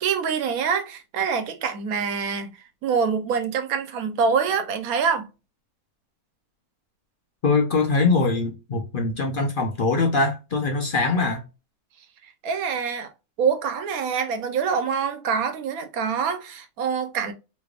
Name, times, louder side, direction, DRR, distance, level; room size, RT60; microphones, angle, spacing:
voice 1, 0.0-2.5 2.8-5.3 12.4-13.1 13.4-17.3, right 6 dB, 90° right, 1.2 m, -25 dB
voice 2, 7.4-11.4, left 3 dB, 45° left, 0.8 m, -22 dB
3.3 x 3.0 x 2.3 m
omnidirectional pair, 1.5 m